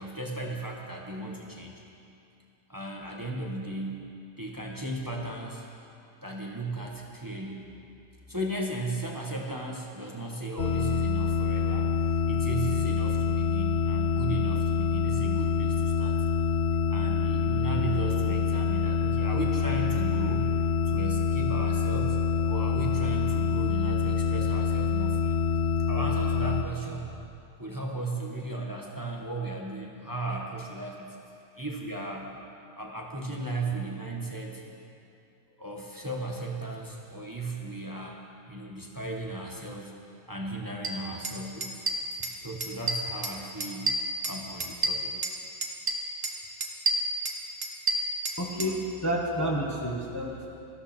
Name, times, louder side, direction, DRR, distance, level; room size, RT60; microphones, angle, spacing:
voice 1, 0.0-1.8 2.7-4.0 4.4-5.6 6.2-7.6 8.3-11.9 12.3-16.2 16.9-22.2 22.5-25.4 25.9-27.2 27.6-31.2 31.5-32.3 32.7-34.6 35.6-39.9 40.3-41.8 42.4-44.0 44.2-45.1, right 2 dB, 15° right, -1 dB, 1.3 m, -36 dB
sound 1, 10.6-26.6, left 5 dB, 50° left, 0.8 m, -26 dB
sound 2, 40.8-40.9 41.2-41.4 41.6-42.4 42.6-43.3 43.6-45.4 45.6-46.3 46.6-48.7, right 2 dB, 40° right, 1.3 m, -29 dB
voice 2, 48.4-50.5, equal, 15° left, -2 dB, 1.1 m, -30 dB
19.0 x 14.0 x 4.4 m, 2.6 s
omnidirectional pair, 1.6 m